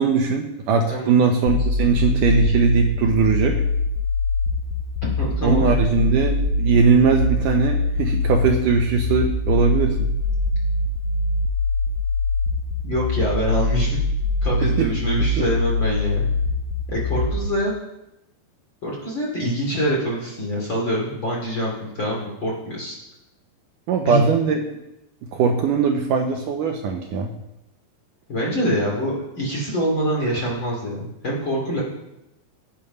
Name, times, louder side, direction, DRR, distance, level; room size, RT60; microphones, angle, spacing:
voice 1, 0.0-3.6 5.4-10.1 14.6-14.9 15.4-15.5 23.9-24.6 25.3-27.3, right 5 dB, 75° right, 3 dB, 1.9 m, -20 dB
sound 1, 1.5-17.5, left 2 dB, 80° left, 2.7 m, -23 dB
voice 2, 5.2-5.7 12.8-14.0 14.4-16.3 16.9-17.7 18.8-23.0 24.1-24.2 28.3-31.8, equal, 30° left, -3 dB, 2.9 m, -25 dB
16.5 x 7.3 x 5.5 m, 0.88 s
omnidirectional pair, 4.9 m